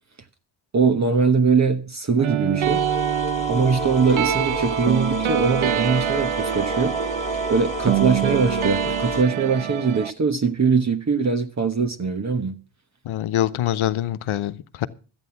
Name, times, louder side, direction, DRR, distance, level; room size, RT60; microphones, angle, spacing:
voice 1, 0.7-2.8 3.5-6.9 7.5-12.6, right 5 dB, 35° right, 1.1 m, -21 dB
sound 1, 2.2-10.1, right 10 dB, 75° right, 0.9 m, -25 dB
sound 2, 2.6-9.2, left 3 dB, 15° left, 1.6 m, -31 dB
voice 2, 13.0-14.9, left 12 dB, 85° left, 0.9 m, -24 dB
13.0 x 9.0 x 5.8 m
wide cardioid pair, 115°, 48 cm